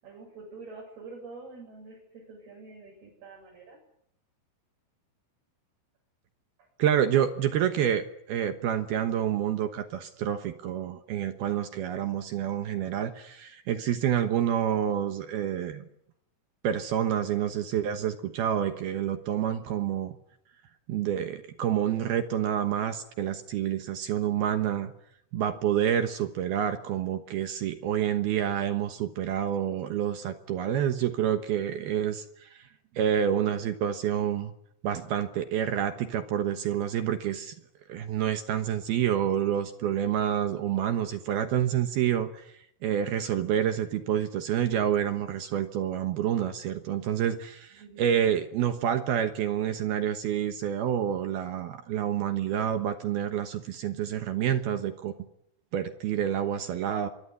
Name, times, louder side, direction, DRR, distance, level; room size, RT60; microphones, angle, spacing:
voice 1, 0.0-3.8 47.8-48.1, right 3 dB, 50° right, -2 dB, 9.8 m, -46 dB
voice 2, 6.8-15.9 16.6-20.2 20.9-24.9 25.3-32.7 33.0-34.5 34.8-37.5 37.9-42.5 42.8-55.1 55.7-57.1, right 10 dB, 70° right, 8 dB, 2.5 m, -28 dB
25.0 x 22.5 x 9.7 m, 0.73 s
omnidirectional pair, 5.8 m